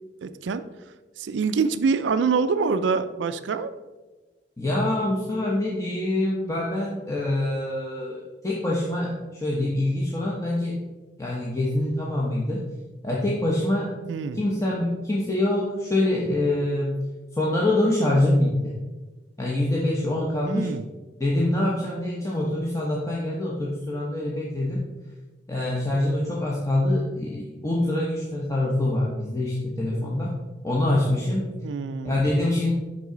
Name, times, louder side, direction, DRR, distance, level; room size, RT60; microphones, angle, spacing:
voice 1, 0.2-0.6 1.2-3.7 14.1-14.4 20.4-20.8 31.6-32.2, right 5 dB, 85° right, 12 dB, 0.4 m, -25 dB
voice 2, 4.6-10.8 11.2-12.6 13.0-13.9 14.3-16.9 17.3-18.8 19.4-20.7 21.2-24.8 25.5-30.3 30.6-31.5 32.0-32.7, left 1 dB, 20° left, -5 dB, 0.8 m, -25 dB
6.1 x 5.4 x 3.8 m, 1.2 s
head